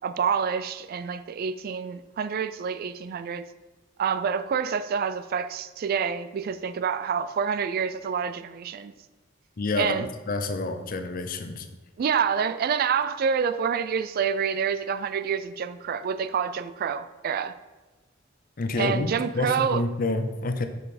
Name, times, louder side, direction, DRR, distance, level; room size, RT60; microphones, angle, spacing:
voice 1, 0.0-3.5 4.0-8.9 9.8-10.1 12.0-17.6 18.8-19.8, right 6 dB, 50° right, 0.3 m, -27 dB
voice 2, 9.6-10.0 10.3-11.7 18.6-20.7, left 2 dB, 45° left, 0.6 m, -28 dB
6.4 x 5.3 x 4.2 m
head